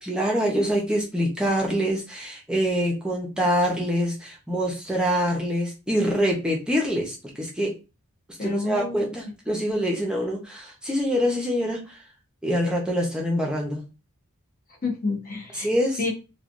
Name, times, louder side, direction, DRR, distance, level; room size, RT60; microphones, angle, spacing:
voice 1, 0.0-7.7 8.4-12.0 12.4-13.8 15.5-16.0, equal, 5° right, -1 dB, 0.6 m, -25 dB
voice 2, 8.4-9.1 14.8-15.7 16.0-16.1, left 3 dB, 40° left, -1 dB, 1.0 m, -29 dB
3.2 x 2.3 x 2.5 m, 0.29 s
head